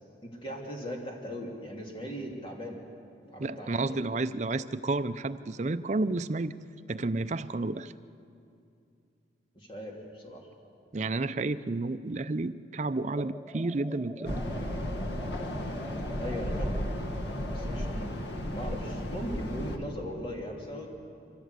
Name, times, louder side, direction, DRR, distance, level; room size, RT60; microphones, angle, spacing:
voice 1, 0.2-2.8 3.3-4.0 9.5-10.5 16.2-16.8 17.5-18.2 18.5-20.9, equal, 30° left, -1 dB, 2.9 m, -39 dB
voice 2, 3.4-6.5 6.9-7.9 10.9-14.4, right 2 dB, 40° right, 11 dB, 0.5 m, -31 dB
sound 1, 13.1-18.0, equal, ahead, 0.7 m, -46 dB
sound 2, 14.2-19.8, equal, 70° left, 1.7 m, -34 dB
24.5 x 16.0 x 8.2 m, 2.6 s
head